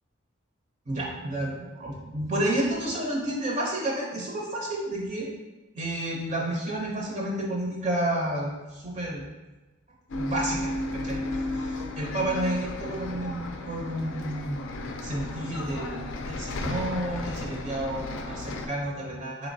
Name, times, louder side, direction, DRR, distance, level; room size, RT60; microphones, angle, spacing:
voice 1, 0.9-5.3 5.7-9.3 10.1-19.5, right 1 dB, 35° right, -2 dB, 0.5 m, -31 dB
Bus, 10.1-18.7, left 2 dB, 75° left, 0.4 m, -34 dB
3.7 x 3.0 x 2.6 m, 1.1 s
head